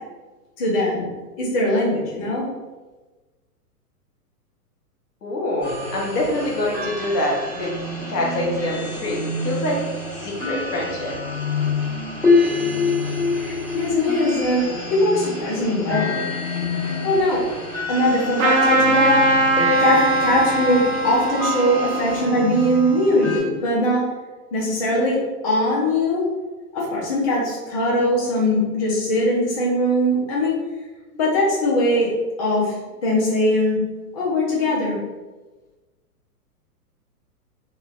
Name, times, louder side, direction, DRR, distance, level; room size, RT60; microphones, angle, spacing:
voice 1, 0.6-1.1 1.4-2.5 13.4-16.2 16.8-17.4 17.9-19.2 19.8-24.0 24.5-26.3 26.7-30.6 31.1-32.1 32.4-32.8 33.0-33.8 34.1-35.0, left 1 dB, 25° left, -5 dB, 0.3 m, -21 dB
voice 2, 5.2-7.7 8.1-9.8 10.2-11.1, left 1 dB, 75° left, -3 dB, 1.0 m, -25 dB
sound 1, 5.6-23.4, left 3 dB, 5° left, 1.1 m, -27 dB
Trumpet, 18.4-23.4, right 2 dB, 55° right, 0.6 m, -21 dB
2.7 x 2.1 x 2.3 m, 1.2 s
hypercardioid pair, 115°, 47 cm